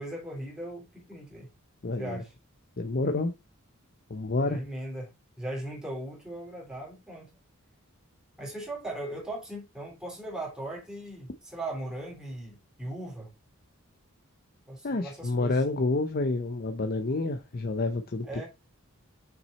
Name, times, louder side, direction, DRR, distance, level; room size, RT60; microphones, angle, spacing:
voice 1, 0.0-1.5 2.0-2.3 4.4-7.3 8.4-13.3 14.7-15.6 18.2-18.5, right 1 dB, 5° right, 3.3 m, -38 dB
voice 2, 1.8-2.2 2.8-3.3 4.1-4.6 14.8-18.3, left 2 dB, 45° left, 0.7 m, -29 dB
6.2 x 6.0 x 4.1 m
head